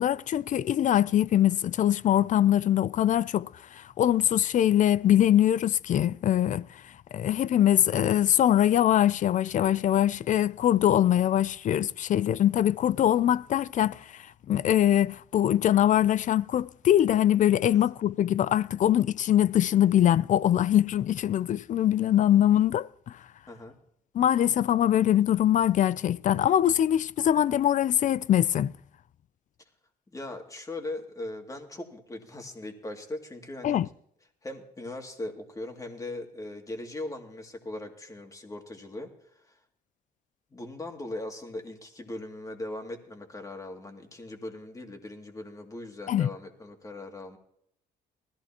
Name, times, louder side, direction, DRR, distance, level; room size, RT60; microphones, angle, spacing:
voice 1, 0.0-6.8 7.1-23.2 24.1-28.7 33.6-33.9 46.1-46.3, left 11 dB, 45° left, 0.4 m, -23 dB
voice 2, 23.5-23.8 30.1-33.8 34.4-39.6 40.5-47.4, left 2 dB, 20° left, 2.4 m, -39 dB
20.0 x 15.0 x 2.9 m
cardioid pair, 135°, 17 cm